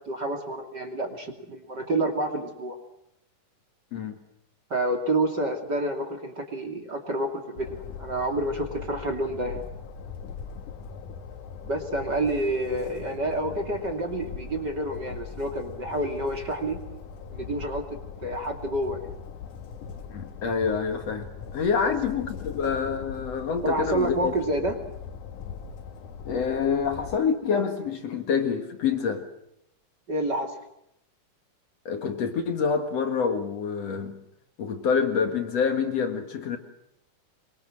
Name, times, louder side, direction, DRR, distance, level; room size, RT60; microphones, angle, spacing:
voice 1, 0.1-2.8 4.7-9.6 11.6-16.8 17.3-17.8 18.2-19.1 21.8-21.9 23.6-24.8 30.1-30.5, right 1 dB, 35° right, 3.0 m, -28 dB
Train, 7.6-27.2, left 6 dB, 75° left, 2.9 m, -40 dB
voice 2, 20.1-21.3 21.5-24.3 26.3-29.2 31.9-34.2 34.6-36.6, left 6 dB, 55° left, 2.6 m, -27 dB
25.0 x 23.5 x 7.7 m
omnidirectional pair, 3.7 m